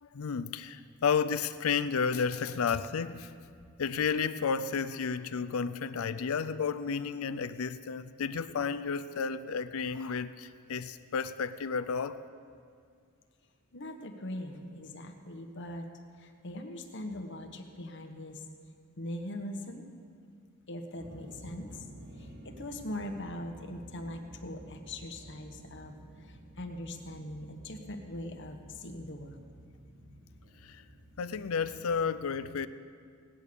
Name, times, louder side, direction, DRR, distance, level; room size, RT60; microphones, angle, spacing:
voice 1, 0.0-3.3 3.8-12.2 30.6-30.8 31.2-32.7, left 6 dB, 85° left, 0.5 m, -32 dB
voice 2, 13.7-15.9 16.2-18.4 19.0-19.8 20.7-21.7 22.2-29.4, left 1 dB, 60° left, 1.3 m, -41 dB
sound 1, 21.0-32.1, right 1 dB, 55° right, 1.4 m, -51 dB
17.5 x 10.0 x 6.9 m
head